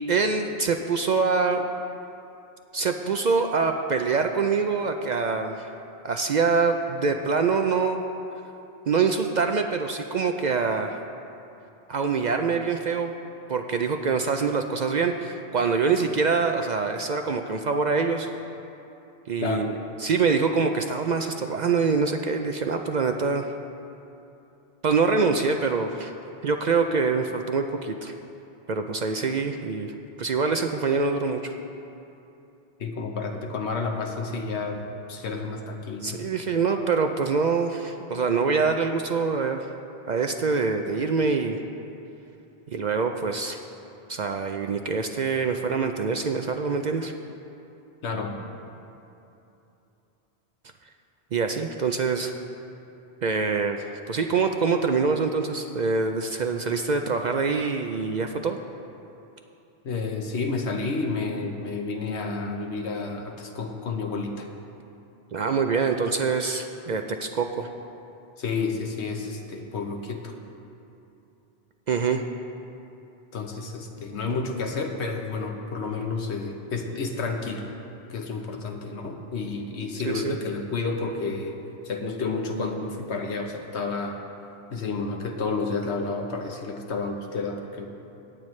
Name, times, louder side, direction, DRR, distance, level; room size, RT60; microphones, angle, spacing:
voice 1, 0.1-1.6 2.7-5.7 6.0-8.0 8.9-11.0 11.9-13.1 13.5-18.3 19.3-19.7 20.0-23.5 24.8-26.1 26.4-28.1 28.7-31.5 36.0-39.7 40.1-41.6 42.7-43.6 44.1-47.1 51.3-52.3 53.2-58.6 65.3-67.7 71.9-72.2 80.1-80.4, right 4 dB, 55° right, 5 dB, 0.5 m, -25 dB
voice 2, 32.8-34.8 35.1-36.2 48.0-48.5 59.8-64.5 68.4-70.3 73.3-77.7 78.1-81.6 81.8-84.2 84.7-87.9, left 4 dB, 85° left, 3 dB, 1.2 m, -30 dB
17.5 x 8.9 x 3.2 m, 2.9 s
omnidirectional pair, 1.1 m